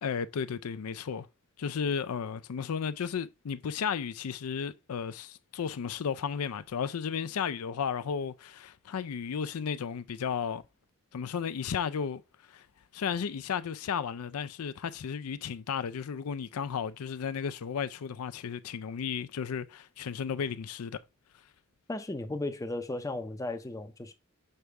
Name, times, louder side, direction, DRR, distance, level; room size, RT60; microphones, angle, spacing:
voice 1, 0.0-1.3 1.6-10.6 11.1-12.2 12.5-12.7 12.9-21.0, left 7 dB, 80° left, 0.4 m, -34 dB
voice 2, 21.9-24.1, left 2 dB, 15° left, 0.5 m, -35 dB
6.7 x 4.7 x 3.3 m
head